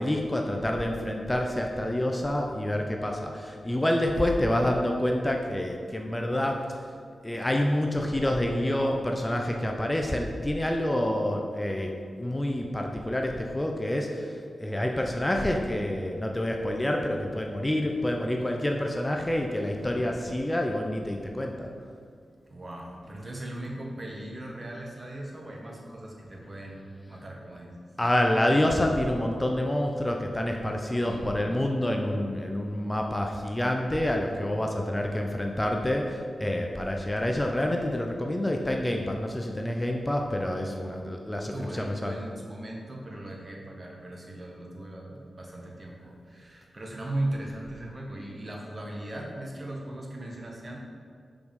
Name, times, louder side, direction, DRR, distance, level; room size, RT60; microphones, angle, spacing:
voice 1, 0.0-6.8 7.2-21.7 28.0-42.2, left 1 dB, 15° left, 2 dB, 0.6 m, -28 dB
voice 2, 17.8-18.2 19.9-20.1 22.5-27.8 31.0-31.6 40.7-41.0 41.5-50.8, right 1 dB, 40° right, -1 dB, 1.2 m, -38 dB
5.1 x 4.8 x 5.3 m, 2.2 s
cardioid pair, 65°, 0 cm